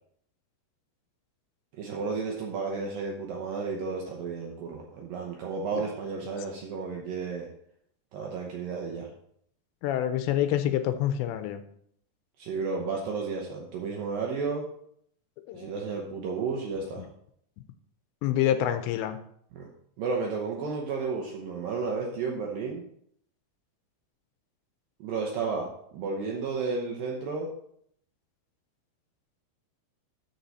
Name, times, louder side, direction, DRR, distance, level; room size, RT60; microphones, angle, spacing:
voice 1, 1.7-7.5 8.1-9.1 12.4-14.6 15.5-17.0 19.5-19.7 20.0-22.8 25.0-25.7 25.9-27.5, right 4 dB, 75° right, 0 dB, 2.1 m, -32 dB
voice 2, 9.8-11.6 15.5-15.7 18.2-19.2, left 11 dB, 80° left, 10 dB, 2.8 m, -27 dB
13.0 x 4.8 x 4.1 m, 0.67 s
omnidirectional pair, 5.2 m